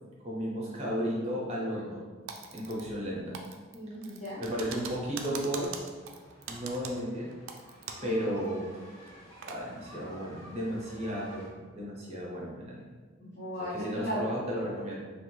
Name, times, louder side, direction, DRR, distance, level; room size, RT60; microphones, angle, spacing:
voice 1, 0.2-2.0 2.5-3.4 4.4-5.8 6.5-7.3 8.0-8.7 9.4-12.9 13.7-15.0, equal, 30° right, -4 dB, 0.6 m, -34 dB
Typing, 2.3-3.1 3.3-8.2 8.4-8.5 9.0-9.6, right 6 dB, 70° right, 0.3 m, -42 dB
voice 2, 3.7-4.4 8.0-8.3 13.2-14.2, equal, 55° left, -10 dB, 0.7 m, -37 dB
sound 1, 4.2-11.5, equal, 15° left, 0.7 m, -53 dB
3.0 x 2.3 x 3.0 m, 1.4 s
head